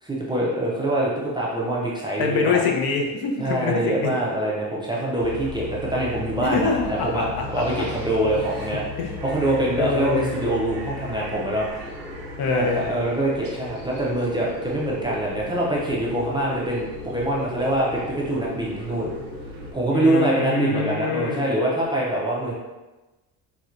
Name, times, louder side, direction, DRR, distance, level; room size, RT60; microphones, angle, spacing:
voice 1, 0.0-2.6 3.4-6.7 7.0-8.8 9.2-11.7 12.5-19.1 19.7-22.5, right 1 dB, 10° right, -6 dB, 0.4 m, -24 dB
voice 2, 2.2-4.1 6.4-7.2 7.6-7.7 8.3-8.4 9.0-9.2 9.8-10.3 12.4-12.9 19.9-21.4, left 4 dB, 65° left, 1 dB, 0.6 m, -25 dB
sound 1, 2.9-21.9, left 1 dB, 40° left, 1.4 m, -41 dB
sound 2, 5.2-19.7, left 2 dB, 90° right, 0.7 m, -38 dB
4.3 x 2.1 x 2.4 m, 1.1 s
cardioid pair, 150°, 40 cm